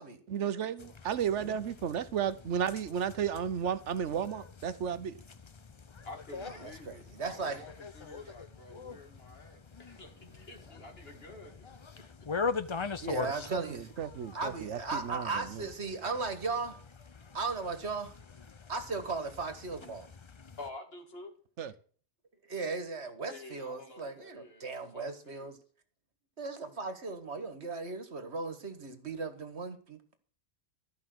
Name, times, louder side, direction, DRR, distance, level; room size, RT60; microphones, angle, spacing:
voice 1, 0.3-5.2 13.2-15.7 21.6-21.7, right 8 dB, 90° right, 1.2 m, -33 dB
sound 1, 0.8-20.7, left 5 dB, 35° left, 0.6 m, -43 dB
voice 2, 6.0-11.6 11.9-12.4 20.6-21.3 23.3-25.5, left 2 dB, 60° left, 2.4 m, -49 dB
voice 3, 6.6-7.6 13.0-13.9 14.3-16.8 17.3-18.1 18.7-20.1 22.4-25.6 26.4-30.2, right 3 dB, 70° right, 1.9 m, -37 dB
14.0 x 5.6 x 7.8 m
omnidirectional pair, 1.2 m